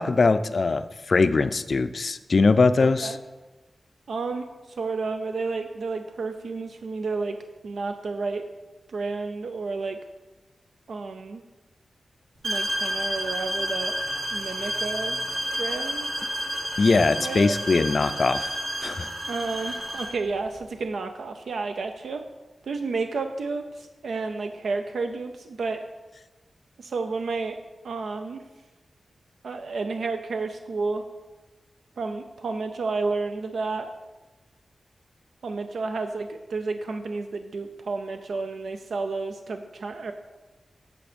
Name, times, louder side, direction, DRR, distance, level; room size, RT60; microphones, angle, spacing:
voice 1, 0.0-3.2 16.8-18.5 18.8-19.1, left 3 dB, 50° left, 11 dB, 0.4 m, -21 dB
voice 2, 4.1-7.4 7.6-8.5 8.9-10.0 10.9-11.4 12.4-13.9 14.3-15.2 15.5-16.1 17.1-17.6 19.3-22.2 22.6-25.8 26.8-27.6 27.8-28.4 29.4-31.0 32.0-33.9 35.4-40.1, right 4 dB, 90° right, 7 dB, 0.5 m, -31 dB
sound 1, 12.4-20.2, right 1 dB, 70° right, 2.4 m, -30 dB
8.6 x 7.0 x 5.1 m, 1.2 s
wide cardioid pair, 150°, 0 cm